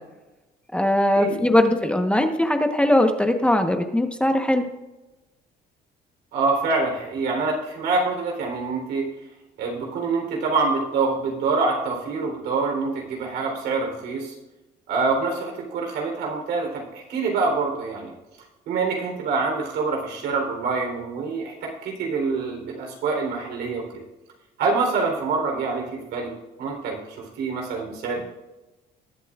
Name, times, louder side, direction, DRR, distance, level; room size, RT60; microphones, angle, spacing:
voice 1, 0.7-4.7, left 1 dB, 5° left, 5 dB, 1.1 m, -20 dB
voice 2, 6.3-9.1 9.6-14.3 14.9-18.1 18.7-24.0 24.6-26.3 26.6-28.2, right 4 dB, 80° right, 1 dB, 3.7 m, -26 dB
20.5 x 8.2 x 2.5 m, 1.1 s
cardioid pair, 110°, 17 cm